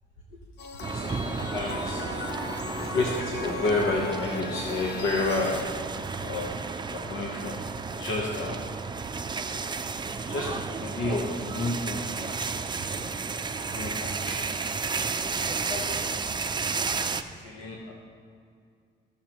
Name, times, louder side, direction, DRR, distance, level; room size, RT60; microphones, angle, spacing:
sound 1, 0.6-5.6, left 4 dB, 55° left, 0.7 m, -38 dB
sound 2, 0.8-17.2, right 4 dB, 20° right, 0.4 m, -32 dB
voice 1, 0.9-2.0 2.9-5.9 6.2-8.7 10.2-12.3 12.9-13.3 13.7-14.7 15.2-17.9, left 2 dB, 85° left, -2 dB, 1.0 m, -32 dB
14.5 x 6.5 x 3.0 m, 2.3 s
cardioid pair, 90°, 20 cm